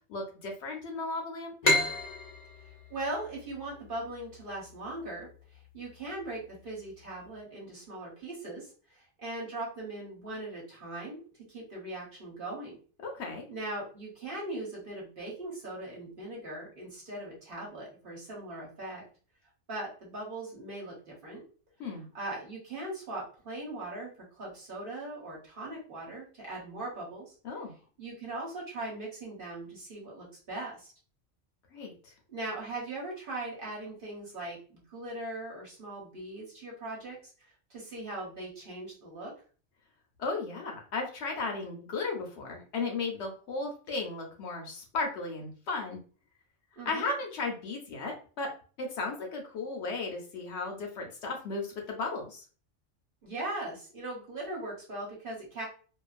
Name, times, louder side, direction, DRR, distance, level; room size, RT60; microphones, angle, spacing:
voice 1, 0.1-1.5 13.0-13.4 21.8-22.1 27.4-27.7 31.7-32.1 40.2-46.0 46.9-48.5 48.8-52.4, left 3 dB, 70° left, 1 dB, 0.8 m, -35 dB
sound 1, 1.6-5.0, left 2 dB, 40° left, 0.6 m, -31 dB
voice 2, 2.9-11.2 11.5-12.8 13.5-19.0 19.7-21.4 22.1-27.3 28.0-30.9 32.3-37.2 37.7-39.3 46.7-47.1 53.2-55.7, right 2 dB, 45° right, -4 dB, 1.1 m, -39 dB
2.5 x 2.3 x 2.3 m, 0.39 s
omnidirectional pair, 1.3 m